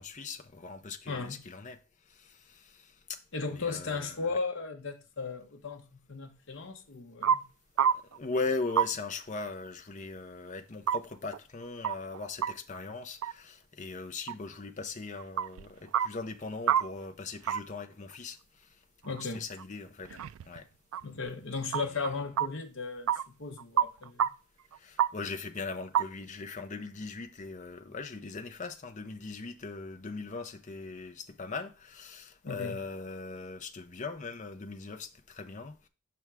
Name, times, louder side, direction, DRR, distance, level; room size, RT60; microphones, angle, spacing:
voice 1, 0.0-1.8 2.1-3.2 3.5-4.4 8.1-18.7 19.1-20.2 20.4-20.7 21.9-22.2 24.8-35.9, left 3 dB, 35° left, 0.6 m, -39 dB
voice 2, 1.1-1.4 3.3-7.5 19.0-19.4 20.1-20.2 21.0-24.3 32.4-32.8, left 4 dB, 60° left, 0.9 m, -36 dB
sound 1, 7.2-7.3 7.8-8.2 8.7-8.9 10.9-11.0 11.3-11.4 11.8-12.5 13.2-13.3 14.3-14.4 15.2-15.6 15.9-16.1 16.7-16.8 17.4-17.6 19.2-19.3 19.6-19.7 20.1-20.6 20.9-21.3 21.7-22.1 22.4-22.5 23.1-23.2 23.6-24.3 24.7-25.1 25.9-26.0, right 9 dB, 75° right, 0.3 m, -27 dB
6.1 x 3.5 x 6.0 m
head